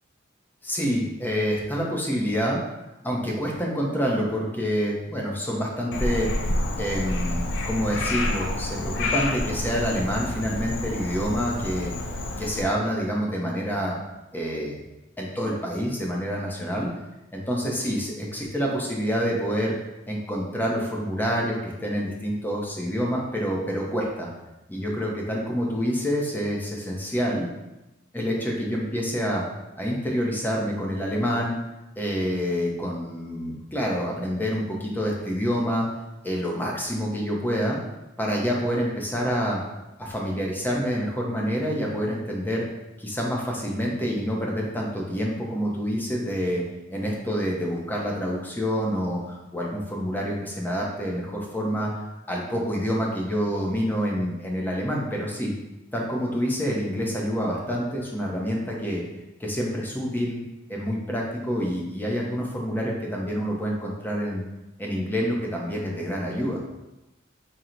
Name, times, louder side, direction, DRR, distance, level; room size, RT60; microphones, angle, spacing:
voice 1, 0.6-2.6 3.0-6.3 6.8-11.9 12.4-14.0 14.3-14.8 15.2-16.9 17.3-19.7 20.1-24.3 24.7-27.5 28.1-29.4 29.7-31.5 32.0-35.9 36.2-37.8 38.2-39.6 40.0-42.7 43.0-46.6 46.9-51.9 52.3-55.5 55.9-59.0 59.4-60.4 60.7-64.4 64.8-66.6, equal, 10° left, -2 dB, 0.5 m, -27 dB
Frog, 5.9-12.6, left 1 dB, 65° left, 0.4 m, -28 dB
4.3 x 2.0 x 3.8 m, 0.99 s
head